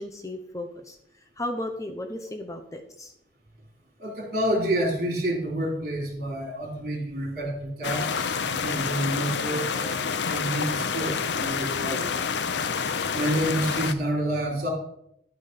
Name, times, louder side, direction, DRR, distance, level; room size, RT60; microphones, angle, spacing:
voice 1, 0.0-3.1, left 1 dB, 20° left, 4 dB, 0.8 m, -35 dB
voice 2, 4.0-12.2 13.1-14.7, right 1 dB, 55° right, -1 dB, 3.4 m, -29 dB
sound 1, 7.8-13.9, left 6 dB, 75° left, 0.6 m, -28 dB
11.5 x 5.1 x 5.7 m, 0.76 s
head